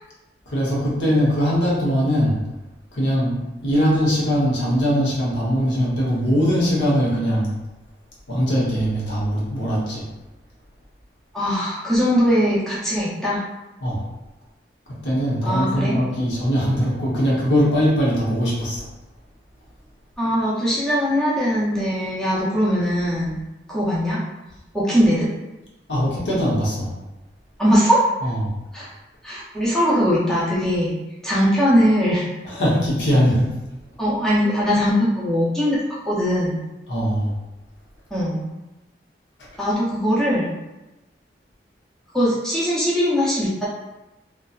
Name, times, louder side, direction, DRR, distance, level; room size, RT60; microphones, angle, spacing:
voice 1, 0.5-2.4 2.9-7.5 8.3-10.1 13.8-14.0 14.9-18.8 25.9-26.9 28.2-28.5 32.4-33.5 36.9-37.3 39.4-39.5, equal, 80° left, -5 dB, 0.9 m, -21 dB
voice 2, 11.3-13.4 15.4-16.0 20.2-23.4 23.7-24.2 24.7-25.3 27.6-28.0 28.7-28.9 29.2-30.9 31.2-32.3 34.0-36.6 38.1-38.4 39.6-40.5 42.1-43.7, equal, 5° left, -9 dB, 0.6 m, -20 dB
2.7 x 2.3 x 2.3 m, 1.0 s
head